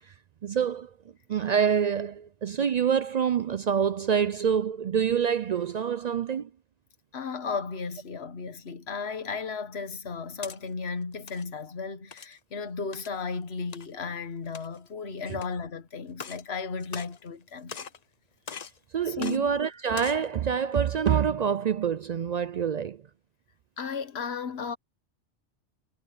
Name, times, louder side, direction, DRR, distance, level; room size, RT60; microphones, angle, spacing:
voice 1, 0.4-0.9 1.3-6.5 15.3-15.4 18.9-23.0, right 7 dB, 65° right, 0.4 m, -26 dB
voice 2, 7.1-17.8 19.1-19.5 23.8-24.8, left 5 dB, 60° left, 1.5 m, -35 dB
sound 1, 10.1-10.6 11.1-11.4 12.1-12.4 12.9-13.2 13.7-13.9 14.4-14.9 15.4-15.5 16.1-16.5 16.8-17.4 17.7-18.0 18.5-18.8 19.2-19.4 19.8-20.2, left 6 dB, 40° left, 0.8 m, -41 dB
omnidirectional pair, 1.2 m